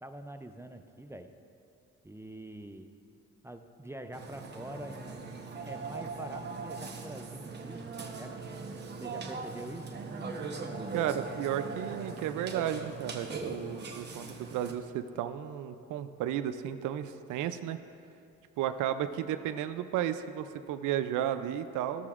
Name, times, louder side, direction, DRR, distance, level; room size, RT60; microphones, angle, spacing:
voice 1, 0.0-1.3 2.0-2.9 3.4-5.3 5.7-7.9 8.2-8.3 9.0-10.0, right 1 dB, 10° right, 7 dB, 0.4 m, -45 dB
Burping eructation, 4.1-14.7, right 4 dB, 35° right, 0.9 m, -40 dB
voice 2, 10.9-17.8 18.6-22.1, right 10 dB, 80° right, 10 dB, 0.5 m, -33 dB
13.5 x 6.7 x 2.4 m, 2.7 s
cardioid pair, 90°, 30 cm